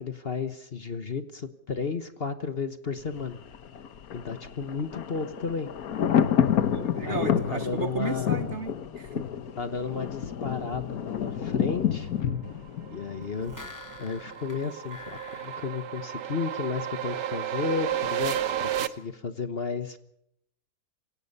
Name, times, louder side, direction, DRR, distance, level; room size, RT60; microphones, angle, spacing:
voice 1, 0.0-3.4 4.1-5.7 7.0-8.3 9.6-12.1 12.9-13.6 14.0-20.0, left 5 dB, 40° left, 10 dB, 1.2 m, -33 dB
Thunder, 3.0-14.0 14.3-14.4, left 9 dB, 60° left, 1.5 m, -29 dB
voice 2, 6.7-9.3 18.8-18.9, right 6 dB, 50° right, 12 dB, 1.1 m, -35 dB
sound 1, 12.3-18.9, right 10 dB, 80° right, 1.6 m, -33 dB
sound 2, 13.2-16.7 17.1-17.2, left 3 dB, 10° left, 3.0 m, -48 dB
27.0 x 17.5 x 5.5 m, 0.74 s
omnidirectional pair, 1.8 m